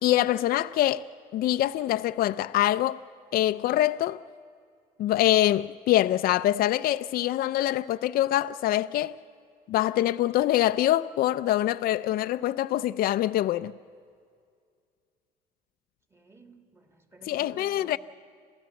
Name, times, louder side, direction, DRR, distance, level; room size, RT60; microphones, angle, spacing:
voice 1, 0.0-1.0 1.3-3.0 3.3-4.2 5.0-9.2 9.7-13.7 17.3-18.0, left 13 dB, 60° left, 0.4 m, -24 dB
voice 2, 16.1-18.0, right 3 dB, 15° right, 2.3 m, -53 dB
27.5 x 15.5 x 7.0 m
cardioid pair, 110°, 17 cm